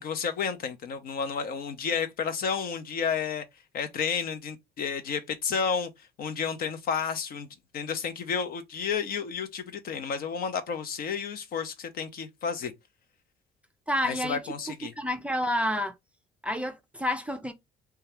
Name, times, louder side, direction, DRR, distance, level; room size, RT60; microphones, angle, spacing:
voice 1, 0.0-3.4 3.7-7.5 7.7-12.7 14.0-14.9, left 6 dB, 60° left, 0.7 m, -31 dB
voice 2, 13.9-14.4 15.0-15.9 16.4-17.5, left 1 dB, 5° right, 0.4 m, -29 dB
2.7 x 2.3 x 3.2 m
cardioid pair, 110°, 17 cm